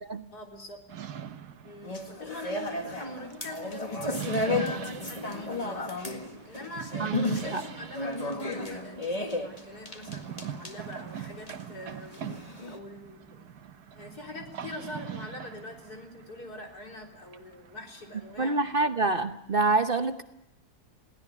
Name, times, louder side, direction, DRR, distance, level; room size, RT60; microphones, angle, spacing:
voice 1, 0.3-0.8 1.6-5.9 6.4-12.3 12.7-13.5 13.9-18.9, left 2 dB, 80° left, 2 dB, 4.4 m, -44 dB
sound 1, 0.9-18.6, right 9 dB, 90° right, 1.6 m, -42 dB
sound 2, 1.8-12.8, left 2 dB, 25° left, 2.0 m, -34 dB
voice 2, 7.0-7.6 18.4-20.2, right 3 dB, 40° right, 8 dB, 1.1 m, -27 dB
22.0 x 17.0 x 8.4 m, 0.83 s
omnidirectional pair, 1.6 m